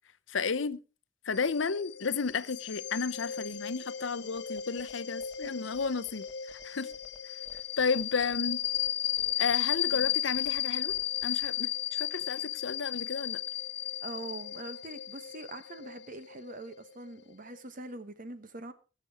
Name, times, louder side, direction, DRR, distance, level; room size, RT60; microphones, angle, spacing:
voice 1, 0.3-0.8 1.2-6.2 6.6-6.9 7.8-8.6 9.4-11.0 11.2-13.4, left 5 dB, 80° left, 0.8 m, -32 dB
sound 1, 1.3-17.6, left 12 dB, 60° left, 1.0 m, -35 dB
sound 2, 4.3-11.6, equal, 5° right, 1.3 m, -57 dB
voice 2, 14.0-18.7, right 2 dB, 45° right, 1.3 m, -43 dB
19.0 x 7.0 x 4.8 m
head